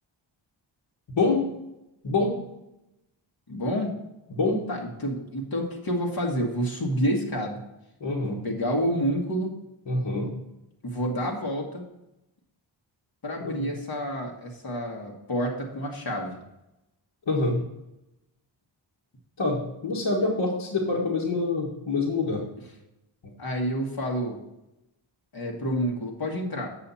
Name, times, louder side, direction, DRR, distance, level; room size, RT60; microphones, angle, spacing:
voice 1, 1.1-1.5 2.0-2.3 4.3-4.6 8.0-8.4 9.9-10.3 13.4-13.7 17.3-17.6 19.4-22.4 23.2-23.3, left 3 dB, 65° left, -4 dB, 1.7 m, -26 dB
voice 2, 3.5-3.9 4.7-7.6 8.2-9.5 10.8-11.8 13.2-16.4 23.4-24.4 25.3-26.7, equal, 50° left, -1 dB, 1.7 m, -29 dB
8.2 x 7.0 x 4.2 m, 0.90 s
wide cardioid pair, 100°, 47 cm